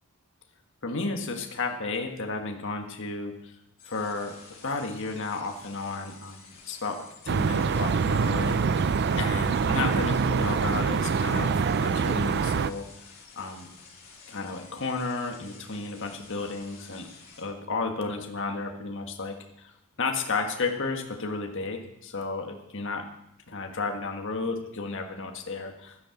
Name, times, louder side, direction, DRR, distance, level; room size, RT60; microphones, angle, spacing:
voice 1, 0.8-3.5 3.8-4.4 4.6-7.0 7.2-8.8 9.2-12.9 13.3-13.7 14.3-17.1 17.4-19.7 20.0-23.0 23.5-26.1, left 3 dB, 55° left, 3 dB, 1.6 m, -33 dB
sound 1, 3.8-17.4, left 5 dB, 40° left, 3.2 m, -51 dB
sound 2, 7.3-12.7, right 5 dB, 50° right, 0.4 m, -25 dB
12.5 x 9.7 x 7.1 m, 0.83 s
head